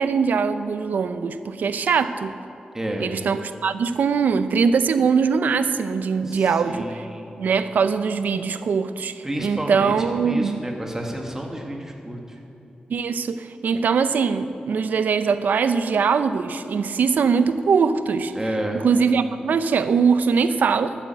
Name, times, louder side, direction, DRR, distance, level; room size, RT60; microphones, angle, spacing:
voice 1, 0.0-2.3 3.0-7.0 7.4-10.6 12.9-18.3 18.7-20.9, right 5 dB, 90° right, 11 dB, 0.6 m, -22 dB
voice 2, 2.7-3.1 6.3-7.3 9.2-12.2 18.3-18.8, right 1 dB, 15° right, 0 dB, 1.6 m, -30 dB
13.0 x 8.8 x 7.7 m, 2.9 s
wide cardioid pair, 95°, 3 cm